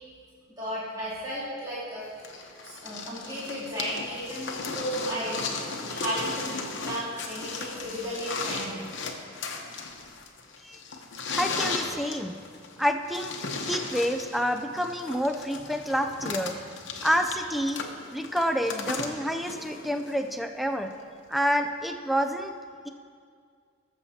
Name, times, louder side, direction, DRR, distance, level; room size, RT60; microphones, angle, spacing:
voice 1, 0.6-5.4 5.8-6.5 6.8-8.8, equal, 20° right, -10 dB, 2.2 m, -34 dB
sound 1, 2.2-20.3 21.4-21.5, left 4 dB, 60° left, 0.9 m, -36 dB
voice 2, 11.3-12.4 12.8-16.6 17.0-17.8 18.1-20.9 21.3-22.5 22.8-22.9, equal, ahead, 6 dB, 0.4 m, -28 dB
19.0 x 7.2 x 2.8 m, 2.1 s
head